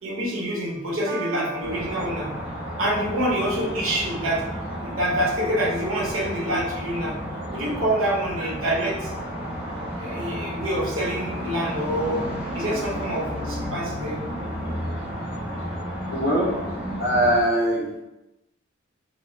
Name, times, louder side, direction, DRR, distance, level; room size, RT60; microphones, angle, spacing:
voice 1, 0.0-2.3 2.8-4.4 4.8-7.2 7.5-9.1 10.0-12.3 12.5-14.2, right 1 dB, 80° right, -4 dB, 0.9 m, -26 dB
Piano, 1.1-3.0, right 5 dB, 55° right, 0.4 m, -38 dB
sound 1, 1.6-17.4, equal, 10° right, 0.9 m, -32 dB
voice 2, 16.1-16.6 17.0-18.0, equal, 50° left, -3 dB, 0.7 m, -22 dB
2.8 x 2.1 x 3.1 m, 0.94 s
head